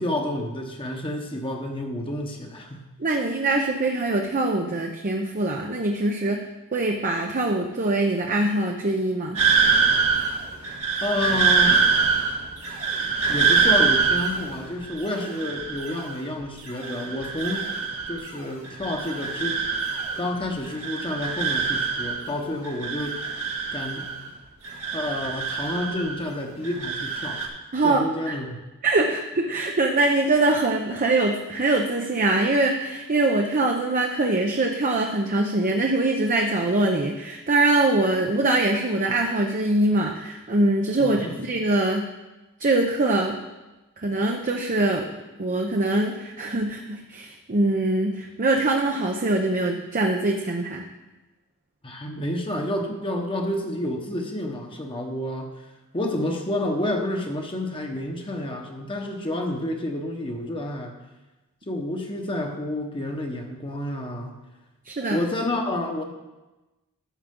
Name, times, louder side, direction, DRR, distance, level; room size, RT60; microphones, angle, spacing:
voice 1, 0.0-2.9 11.0-11.9 13.3-17.7 18.1-19.6 20.2-24.1 24.9-27.5 27.8-28.6 41.0-41.3 51.8-55.6 55.9-60.9 61.7-64.4 65.1-66.0, left 1 dB, 25° left, 2 dB, 1.1 m, -29 dB
voice 2, 3.0-9.4 27.7-28.3 28.8-42.1 42.6-43.4 44.0-45.1 45.4-50.8 64.8-65.2, right 2 dB, 40° right, 1 dB, 0.7 m, -23 dB
sound 1, 9.3-16.3 16.6-18.3 18.6-20.4 20.6-22.3 22.6-24.3 24.6-26.3 26.6-27.5, right 5 dB, 75° right, 1.6 m, -24 dB
13.0 x 7.2 x 3.8 m, 1.1 s
head